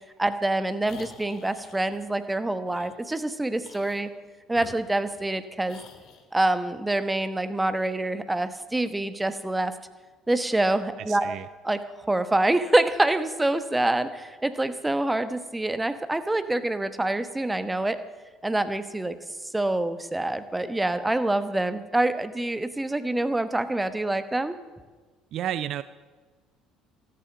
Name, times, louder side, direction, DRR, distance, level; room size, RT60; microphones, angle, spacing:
voice 1, 0.2-4.1 4.5-5.8 6.3-9.8 10.3-11.4 11.6-18.0 18.4-19.2 19.4-24.5, right 2 dB, 10° right, 11 dB, 1.1 m, -26 dB
sound 1, 0.8-2.0 2.7-2.9 3.6-4.1 4.5-5.4 5.7-6.3, left 6 dB, 55° left, 2.0 m, -48 dB
voice 2, 11.1-11.5 25.3-25.8, right 11 dB, 55° right, 15 dB, 0.4 m, -31 dB
13.5 x 13.0 x 7.3 m, 1.3 s
figure-of-eight pair, 60°, 0 cm